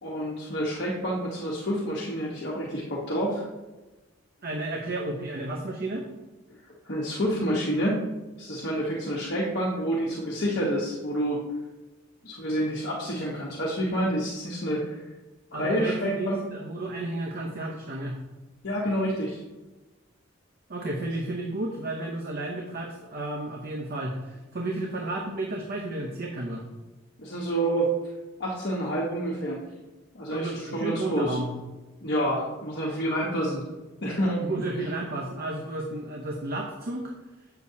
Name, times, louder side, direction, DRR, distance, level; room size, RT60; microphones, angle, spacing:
voice 1, 0.0-3.5 6.9-8.0 8.4-11.4 12.2-15.0 15.5-16.4 18.6-19.4 27.2-27.9 28.4-29.6 30.1-31.4 32.0-33.6 34.0-34.4, equal, 60° left, -5 dB, 1.2 m, -28 dB
voice 2, 4.4-6.1 15.5-18.2 20.7-26.6 30.3-31.5 34.4-37.1, right 2 dB, 50° right, 0 dB, 0.8 m, -32 dB
8.1 x 6.8 x 2.8 m, 1.2 s
head